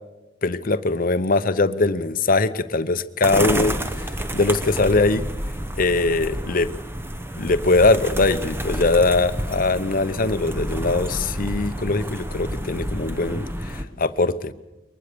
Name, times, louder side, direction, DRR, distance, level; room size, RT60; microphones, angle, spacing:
voice 1, 0.4-5.2 5.8-6.7 7.4-14.5, left 3 dB, 45° left, 12 dB, 0.8 m, -21 dB
sound 1, 3.2-13.8, equal, 10° right, 0.9 m, -29 dB
23.0 x 20.0 x 6.8 m, 1.0 s
head